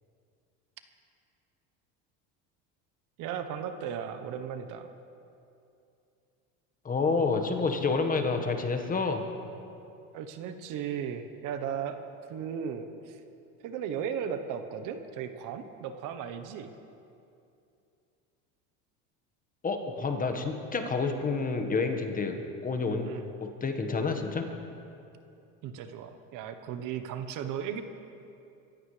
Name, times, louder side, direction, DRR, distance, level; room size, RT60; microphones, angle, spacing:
voice 1, 3.2-4.9 10.1-12.0 12.3-13.2 13.6-16.7 23.0-23.2 25.6-27.8, right 8 dB, 55° right, 8 dB, 1.1 m, -36 dB
voice 2, 6.8-9.2 19.6-23.1 23.6-24.5, left 4 dB, 25° left, 5 dB, 1.5 m, -29 dB
23.0 x 15.5 x 3.3 m, 2.6 s
supercardioid pair, 120°, 36 cm